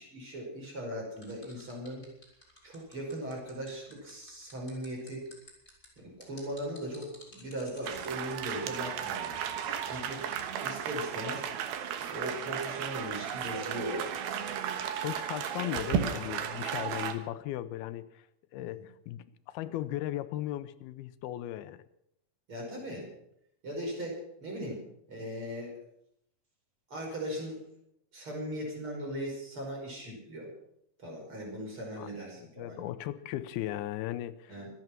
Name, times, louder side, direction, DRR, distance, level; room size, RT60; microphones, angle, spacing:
voice 1, 0.0-2.0 2.6-5.3 6.0-10.2 10.6-11.4 12.1-14.2 18.6-18.8 22.5-23.1 23.6-24.8 25.1-25.8 26.9-27.6 28.1-30.5 31.0-32.9 34.5-34.7, equal, 35° right, -1 dB, 6.4 m, -39 dB
sound 1, 1.2-8.1, left 1 dB, 15° left, 4.6 m, -54 dB
sound 2, 7.9-17.1, right 8 dB, 80° right, 3.1 m, -34 dB
voice 2, 15.0-18.3 18.5-21.8 32.0-32.1 32.4-34.5, left 13 dB, 85° left, 14 dB, 2.7 m, -37 dB
25.0 x 9.4 x 6.0 m, 0.75 s
omnidirectional pair, 4.3 m